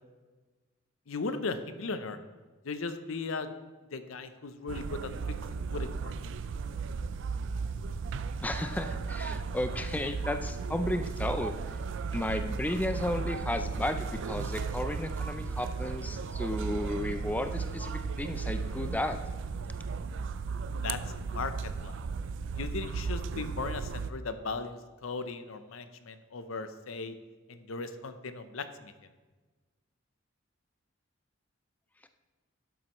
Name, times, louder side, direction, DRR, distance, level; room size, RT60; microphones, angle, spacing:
voice 1, 1.1-2.2 2.6-3.5 3.9-6.1 20.8-22.0 22.5-27.2 27.5-28.9, left 4 dB, 80° left, 10 dB, 0.6 m, -37 dB
sound 1, 4.7-24.1, right 5 dB, 65° right, 0.4 m, -35 dB
voice 2, 8.4-11.5 12.1-19.2 32.0-32.1, left 1 dB, 10° left, 8 dB, 0.4 m, -33 dB
11.5 x 7.6 x 3.0 m, 1.3 s
head